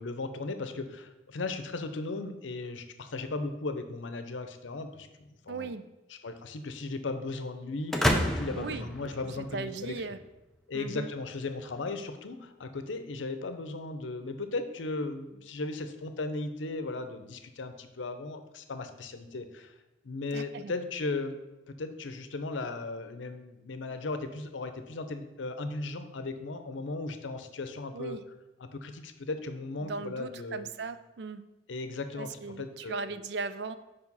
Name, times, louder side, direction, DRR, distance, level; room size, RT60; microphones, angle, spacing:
voice 1, 0.0-5.7 6.2-9.9 10.7-19.7 20.0-21.4 21.7-28.2 28.6-30.7 31.7-33.1, left 3 dB, 90° left, 9 dB, 0.6 m, -36 dB
voice 2, 5.5-5.9 8.5-8.9 9.2-10.2 10.7-11.1 20.3-20.7 27.9-28.2 29.8-31.4 32.2-33.8, right 4 dB, 60° right, 12 dB, 0.4 m, -38 dB
sound 1, 7.9-9.9, equal, ahead, 0.5 m, -29 dB
5.0 x 4.8 x 5.4 m, 1.0 s
head